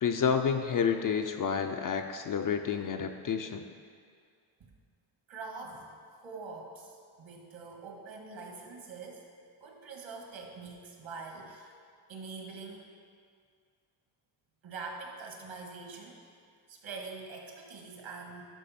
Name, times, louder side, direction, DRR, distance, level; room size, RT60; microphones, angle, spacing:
voice 1, 0.0-3.7, left 7 dB, 45° left, 6 dB, 0.5 m, -29 dB
voice 2, 5.3-5.9 6.2-9.3 9.6-11.7 12.1-12.8 14.6-16.2 16.7-18.4, right 4 dB, 65° right, 1 dB, 1.7 m, -44 dB
11.5 x 5.4 x 4.3 m, 2.2 s
cardioid pair, 125°, 50 cm